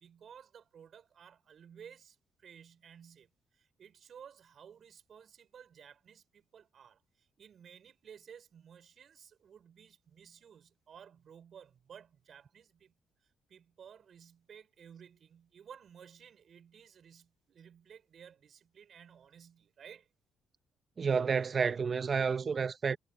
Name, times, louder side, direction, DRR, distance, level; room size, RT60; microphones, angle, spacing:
voice 1, 0.0-12.9 13.2-20.1, right 8 dB, 55° right, 5.2 m, -55 dB
voice 2, 21.0-23.0, right 5 dB, 40° right, 0.7 m, -30 dB
cardioid pair, 90°, 0 cm